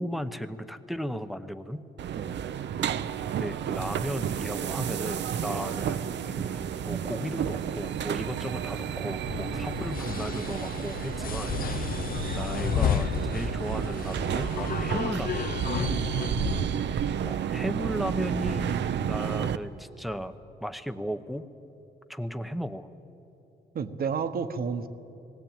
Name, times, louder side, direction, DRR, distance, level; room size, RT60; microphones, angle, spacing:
voice 1, 0.0-1.8 3.4-11.9 12.3-15.5 17.3-20.3 20.6-21.5 22.1-22.9, equal, ahead, 10 dB, 0.8 m, -35 dB
sound 1, 2.0-19.6, right 9 dB, 70° right, 0.7 m, -31 dB
sound 2, 9.3-16.6, left 7 dB, 50° left, 0.7 m, -32 dB
voice 2, 23.7-24.9, right 6 dB, 55° right, 10 dB, 1.1 m, -34 dB
19.0 x 18.0 x 8.9 m, 2.9 s
cardioid pair, 110°, 19 cm